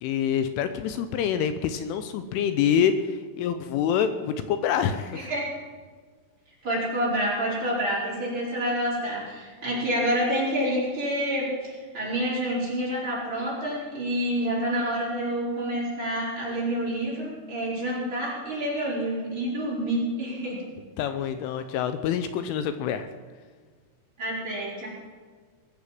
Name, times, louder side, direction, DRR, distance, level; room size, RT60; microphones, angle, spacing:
voice 1, 0.0-5.3 21.0-23.1, left 8 dB, 85° left, 10 dB, 3.2 m, -26 dB
voice 2, 5.1-5.5 6.6-20.6 24.2-24.9, equal, 25° right, -6 dB, 5.1 m, -28 dB
21.5 x 7.6 x 7.5 m, 1.5 s
omnidirectional pair, 5.8 m